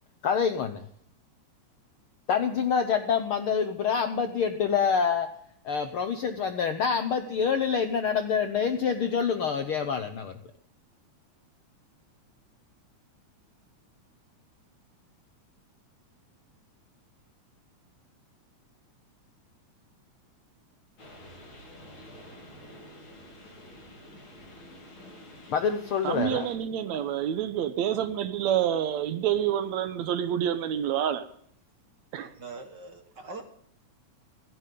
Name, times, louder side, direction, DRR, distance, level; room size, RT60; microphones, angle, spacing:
voice 1, 0.2-0.8 2.3-5.3 5.6-10.3 25.5-26.5, left 6 dB, 70° left, 1.3 m, -26 dB
sound 1, 21.0-26.6, left 1 dB, 40° left, 3.6 m, -49 dB
voice 2, 26.0-31.3 32.1-32.3, right 10 dB, 75° right, 2.1 m, -28 dB
voice 3, 32.4-33.4, right 3 dB, 50° right, 1.3 m, -42 dB
16.0 x 14.5 x 3.8 m
omnidirectional pair, 3.5 m